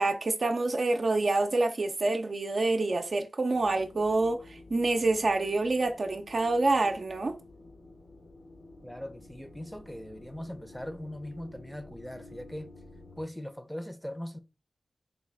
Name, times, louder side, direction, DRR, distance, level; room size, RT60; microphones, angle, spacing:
voice 1, 0.0-7.4, right 2 dB, 60° right, 0.5 m, -27 dB
sound 1, 3.5-13.2, left 2 dB, 85° left, 1.1 m, -51 dB
voice 2, 8.8-12.7 13.2-14.4, left 1 dB, 5° left, 0.6 m, -40 dB
4.1 x 2.2 x 3.4 m
cardioid pair, 45°, 0 cm